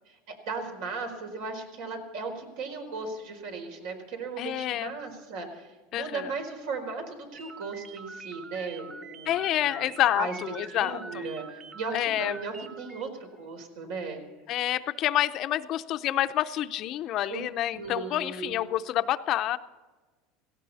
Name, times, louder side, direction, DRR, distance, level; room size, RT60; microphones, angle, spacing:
voice 1, 0.5-9.9 10.1-10.3 10.7-14.2 17.3-17.4 17.7-18.5, right 4 dB, 70° right, 4 dB, 4.4 m, -37 dB
voice 2, 4.4-4.9 5.9-6.3 9.3-11.3 11.9-12.4 14.5-19.6, left 13 dB, 45° left, 11 dB, 0.6 m, -28 dB
sound 1, 7.3-13.1, right 4 dB, 25° right, 1.2 m, -45 dB
18.0 x 17.0 x 4.2 m, 1.3 s
supercardioid pair, 140°, 0 cm